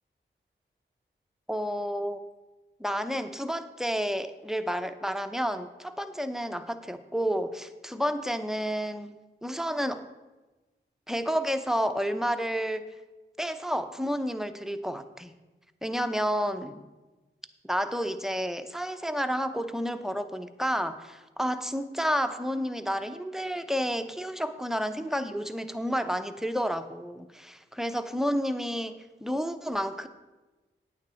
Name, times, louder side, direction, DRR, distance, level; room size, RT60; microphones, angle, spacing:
voice 1, 1.5-2.2 2.8-9.1 9.4-10.1 11.1-12.9 13.4-15.3 15.8-16.9 17.6-28.9 29.2-30.1, equal, ahead, 10 dB, 0.7 m, -30 dB
9.3 x 8.9 x 4.4 m, 1.2 s
wide cardioid pair, 60°, 21 cm